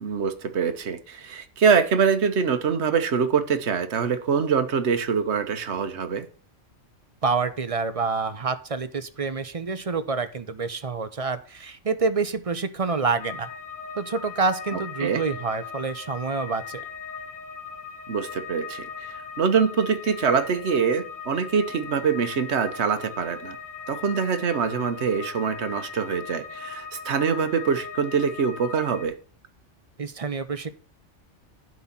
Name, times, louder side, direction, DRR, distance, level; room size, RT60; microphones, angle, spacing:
voice 1, 0.0-6.2 15.0-15.2 18.1-23.6 23.9-29.1, right 6 dB, 65° right, 1.2 m, -24 dB
voice 2, 7.2-13.5 14.0-16.8 30.0-30.7, right 4 dB, 35° right, 0.6 m, -27 dB
sound 1, 13.2-29.1, left 6 dB, 85° left, 1.4 m, -39 dB
11.0 x 4.1 x 7.2 m
omnidirectional pair, 1.2 m